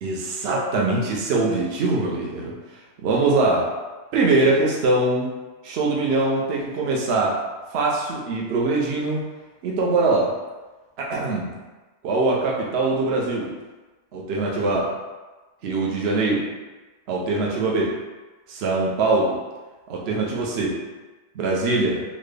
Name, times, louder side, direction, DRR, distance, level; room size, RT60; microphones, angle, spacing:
voice 1, 0.0-2.5 3.0-3.7 4.1-5.3 5.6-7.3 7.7-9.2 9.6-10.3 11.0-11.5 12.0-13.5 14.1-14.9 15.6-16.5 17.1-17.9 18.5-19.4 19.9-20.8 21.3-22.0, right 3 dB, 65° right, -2 dB, 0.8 m, -22 dB
4.0 x 2.1 x 3.2 m, 1.2 s
omnidirectional pair, 1.2 m